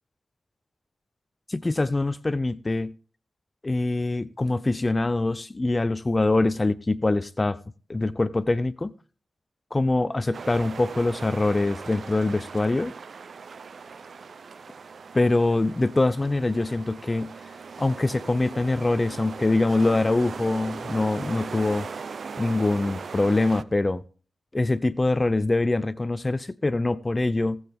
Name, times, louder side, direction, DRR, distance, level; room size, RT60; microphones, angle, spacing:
voice 1, 1.5-2.9 3.6-7.6 7.9-8.9 9.7-12.9 15.1-17.3 17.8-21.9 22.4-24.0 24.5-27.6, left 2 dB, 30° left, 0.6 m, -24 dB
sound 1, 10.3-23.6, right 5 dB, 65° right, 0.7 m, -39 dB
18.0 x 8.0 x 3.6 m
cardioid pair, 45°, 0 cm